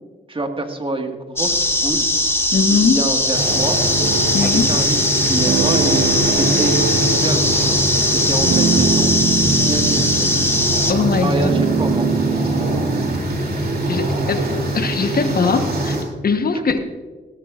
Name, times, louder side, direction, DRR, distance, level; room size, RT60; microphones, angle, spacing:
voice 1, 0.3-2.1 2.7-3.8 4.4-10.3 11.1-12.6, right 2 dB, 30° right, 4 dB, 1.8 m, -27 dB
sound 1, 1.4-10.9, left 1 dB, 15° left, 1.7 m, -19 dB
voice 2, 2.5-3.0 4.3-4.7 10.9-11.5 13.9-14.5 14.7-16.8, left 4 dB, 55° left, 7 dB, 1.2 m, -20 dB
sound 2, 3.3-16.0, right 1 dB, 55° right, 3.0 m, -23 dB
sound 3, 4.0-13.2, right 5 dB, 75° right, 1.2 m, -24 dB
17.5 x 14.0 x 2.5 m, 1.4 s
cardioid pair, 60°, 19 cm